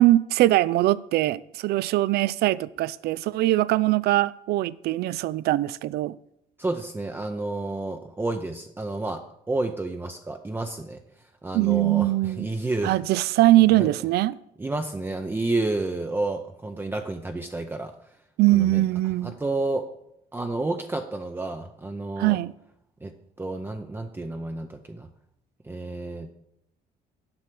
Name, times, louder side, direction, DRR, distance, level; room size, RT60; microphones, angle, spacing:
voice 1, 0.0-6.2 11.5-12.5 12.8-14.3 18.4-19.3 22.2-22.5, right 16 dB, 70° right, 0.4 m, -21 dB
voice 2, 6.6-13.0 13.8-13.9 14.6-17.9 18.5-18.8 19.2-19.9 20.3-22.4 23.0-25.1 25.6-26.3, right 2 dB, 15° right, 0.6 m, -30 dB
7.9 x 5.6 x 7.5 m
cardioid pair, 110°, 17 cm